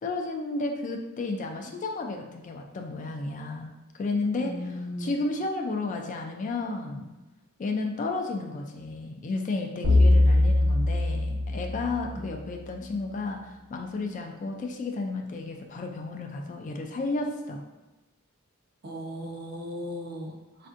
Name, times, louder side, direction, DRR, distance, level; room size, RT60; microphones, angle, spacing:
voice 1, 0.0-7.1 7.6-17.6, left 3 dB, 35° left, 3 dB, 0.3 m, -32 dB
voice 2, 4.4-5.2 12.2-12.4 18.8-20.7, equal, 45° right, 1 dB, 0.5 m, -37 dB
sound 1, 9.8-12.3, left 2 dB, 85° right, 0.7 m, -22 dB
4.3 x 2.5 x 2.4 m, 1.1 s
head